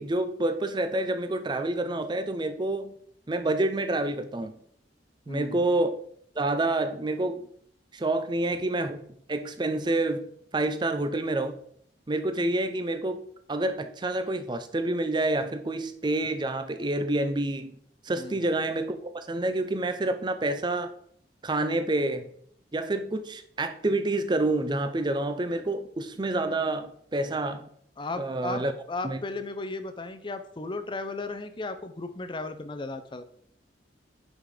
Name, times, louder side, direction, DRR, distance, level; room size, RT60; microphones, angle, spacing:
voice 1, 0.0-2.9 3.3-4.6 5.3-6.0 6.4-7.4 7.9-9.0 9.3-11.6 12.1-13.2 13.5-17.8 18.0-20.9 21.4-22.3 22.7-27.7 28.2-28.7 29.0-29.2, right 2 dB, 25° right, 0.5 m, -28 dB
voice 2, 5.3-5.7 18.2-18.5 28.0-33.3, left 3 dB, 25° left, 0.6 m, -35 dB
5.8 x 5.1 x 4.9 m
head